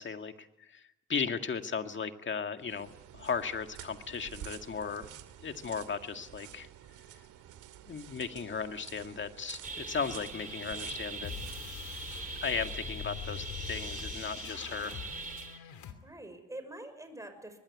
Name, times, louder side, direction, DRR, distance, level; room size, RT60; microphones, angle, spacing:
voice 1, 0.0-5.1 5.4-6.7 7.9-11.3 12.4-15.0, left 6 dB, 40° left, 7 dB, 2.0 m, -36 dB
sound 1, 2.6-14.5, right 11 dB, 90° right, 2.4 m, -51 dB
voice 2, 4.3-5.2 15.5-15.7 16.0-17.6, right 1 dB, 10° right, 8 dB, 5.9 m, -47 dB
sound 2, 9.6-15.6, right 3 dB, 30° right, 2.8 m, -42 dB
sound 3, 10.3-15.9, left 9 dB, 75° left, 2.9 m, -44 dB
24.0 x 20.0 x 9.7 m, 0.90 s
cardioid pair, 90°, 30 cm